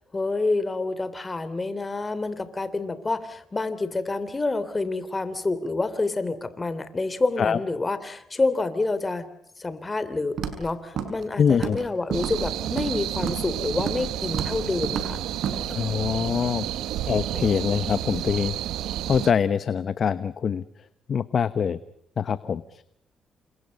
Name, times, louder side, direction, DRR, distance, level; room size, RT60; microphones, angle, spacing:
voice 1, 0.1-9.3 9.6-15.2, left 3 dB, 25° left, 12 dB, 3.2 m, -28 dB
Walk footsteps, 10.4-10.7 11.0-11.2 11.5-11.9 12.1-12.9 13.2-13.5 13.8-14.1 14.3-14.6 14.8-15.1 15.4-15.6, right 8 dB, 65° right, 5.9 m, -30 dB
voice 2, 11.4-11.8 15.7-16.7 17.1-18.5 19.1-20.6 21.1-21.8 22.2-22.8, left 7 dB, 50° left, 14 dB, 1.0 m, -24 dB
sound 1, 12.1-19.3, right 12 dB, 85° right, 1.3 m, -31 dB
29.5 x 27.0 x 5.4 m, 0.74 s
cardioid pair, 90°, 0 cm